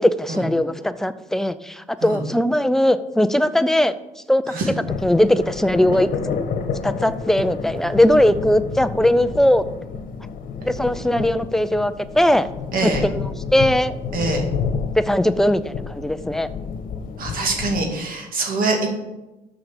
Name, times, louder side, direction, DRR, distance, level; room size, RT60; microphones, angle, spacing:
voice 1, 0.0-3.9 4.3-4.4 5.0-6.1 6.8-9.6 10.6-12.5 12.8-14.0 15.0-16.5, left 1 dB, ahead, 12 dB, 0.4 m, -19 dB
sound 1, 4.9-17.9, left 5 dB, 55° left, 1.2 m, -30 dB
voice 2, 12.7-13.0 14.1-14.4 17.2-18.9, right 3 dB, 55° right, 2 dB, 2.1 m, -24 dB
6.6 x 5.9 x 7.0 m, 1.0 s
cardioid pair, 110°, 17 cm